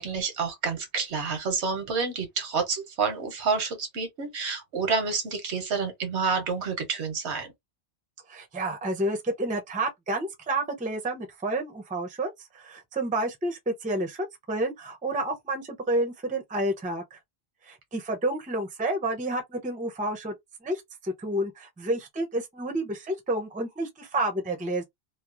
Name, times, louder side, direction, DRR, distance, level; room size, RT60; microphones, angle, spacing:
voice 1, 0.0-7.5, right 5 dB, 85° right, 1.1 m, -29 dB
voice 2, 8.3-17.2 17.6-20.3 20.6-24.8, right 1 dB, 10° right, 0.4 m, -30 dB
2.9 x 2.0 x 2.4 m
omnidirectional pair, 1.1 m